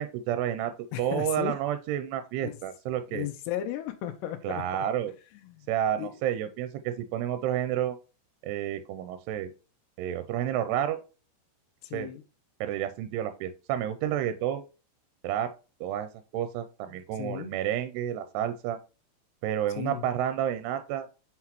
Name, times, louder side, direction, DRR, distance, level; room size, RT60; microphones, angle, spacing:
voice 1, 0.0-0.7 1.0-3.3 4.4-5.1 5.7-8.0 8.4-9.5 10.0-11.0 11.9-12.1 12.6-14.6 15.2-15.5 15.8-16.1 16.3-18.8 19.4-21.1, right 10 dB, 85° right, 10 dB, 2.6 m, -30 dB
voice 2, 0.9-1.6 2.4-2.6 3.1-4.9 5.3-5.7 6.0-6.1 11.8-12.2 16.9-17.5 19.8-20.0, left 11 dB, 90° left, 6 dB, 2.9 m, -35 dB
5.9 x 5.8 x 2.9 m, 0.32 s
omnidirectional pair, 4.9 m